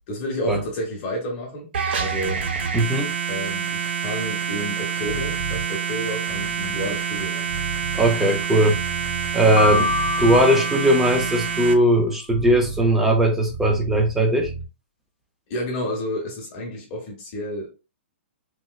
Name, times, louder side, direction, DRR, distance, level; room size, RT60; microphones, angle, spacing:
voice 1, 0.1-1.7 2.0-2.5 3.3-7.5 15.5-17.7, equal, 30° left, 0.9 m, -30 dB
sound 1, 1.7-11.7, right 7 dB, 60° right, 0.6 m, -27 dB
voice 2, 2.7-3.1 8.0-8.8 9.3-14.5, right 1 dB, 5° right, 0.4 m, -19 dB
sound 2, 5.1-5.7 6.2-9.3 9.6-10.5 11.0-14.1 14.4-14.7, right 3 dB, 40° right, 1.5 m, -34 dB
Piano, 9.6-11.7, left 4 dB, 70° left, 0.5 m, -26 dB
3.0 x 2.9 x 2.2 m
hypercardioid pair, 165°, 7 cm